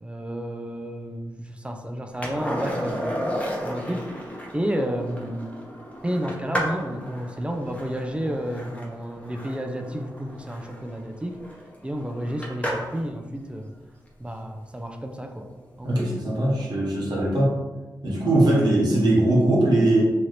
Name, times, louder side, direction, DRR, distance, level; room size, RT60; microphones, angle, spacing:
voice 1, 0.0-4.0 4.5-5.5 6.0-11.4 11.8-13.7 14.2-15.5 15.8-16.1, equal, 15° right, 4 dB, 0.4 m, -31 dB
Skateboard, 2.2-13.1 15.6-15.7, equal, 20° left, 0.8 m, -33 dB
voice 2, 15.8-17.6 18.0-20.1, right 1 dB, 65° right, -5 dB, 1.1 m, -20 dB
2.9 x 2.5 x 3.1 m, 1.2 s
cardioid pair, 70°, 8 cm